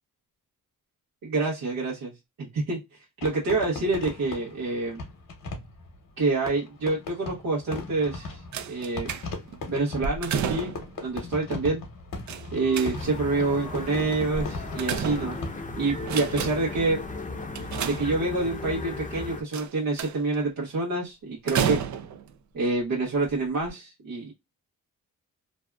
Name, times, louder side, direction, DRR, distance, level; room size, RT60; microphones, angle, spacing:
voice 1, 1.2-2.1 2.4-2.8 3.2-5.0 6.2-8.4 8.7-9.1 9.7-10.7 11.0-11.8 12.5-15.4 15.8-17.0 17.8-21.8 22.5-24.3, right 3 dB, 75° right, -4 dB, 0.9 m, -27 dB
Fireworks, 3.2-15.9, left 3 dB, 75° left, 0.9 m, -38 dB
sound 1, 8.5-9.6 10.0-11.0 12.3-13.3 14.3-15.6 16.0-16.8 17.5-18.5 19.5-20.4 21.5-22.3 23.1-23.3 23.6-23.7, right 7 dB, 55° right, 0.4 m, -31 dB
sound 2, 12.9-19.4, left 3 dB, 20° left, 0.6 m, -36 dB
2.6 x 2.2 x 2.2 m, 0.21 s
cardioid pair, 75°, 34 cm